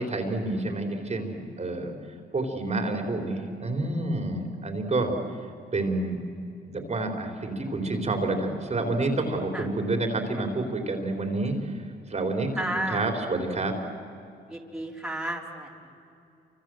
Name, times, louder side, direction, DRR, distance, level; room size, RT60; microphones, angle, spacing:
voice 1, 0.0-1.9 2.3-5.1 5.7-6.2 6.7-11.8 12.1-13.7, right 2 dB, 35° right, 3 dB, 3.9 m, -28 dB
voice 2, 12.6-13.0 14.5-15.7, right 1 dB, 5° right, -2 dB, 4.0 m, -32 dB
28.5 x 26.0 x 7.8 m, 2.6 s
cardioid pair, 90°, 20 cm